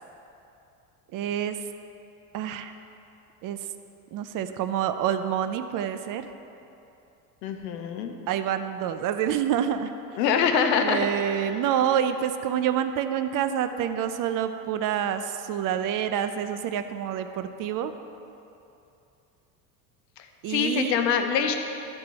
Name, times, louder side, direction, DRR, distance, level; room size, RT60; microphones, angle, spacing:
voice 1, 1.1-1.6 2.3-2.7 3.4-3.7 4.1-6.3 8.3-10.2 10.8-17.9 20.4-21.0, right 9 dB, 45° right, 10 dB, 0.5 m, -27 dB
voice 2, 7.4-8.1 10.2-11.0 20.2-21.6, left 7 dB, 80° left, 6 dB, 0.9 m, -24 dB
13.0 x 4.4 x 4.3 m, 2.7 s
hypercardioid pair, 80°, 49 cm